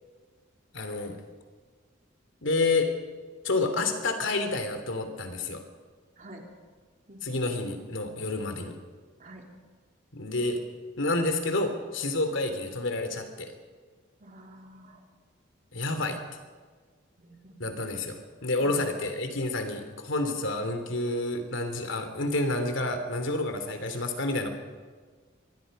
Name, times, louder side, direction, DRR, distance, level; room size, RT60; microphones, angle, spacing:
voice 1, 0.7-1.2 2.4-2.9 3.4-5.6 7.2-8.8 10.1-10.6 11.0-13.5 15.7-16.2 17.6-24.5, left 2 dB, 75° left, 7 dB, 3.0 m, -29 dB
voice 2, 14.2-15.0 17.2-17.5 18.6-18.8, right 1 dB, 40° right, 2 dB, 3.4 m, -48 dB
25.0 x 21.5 x 5.4 m, 1.5 s
head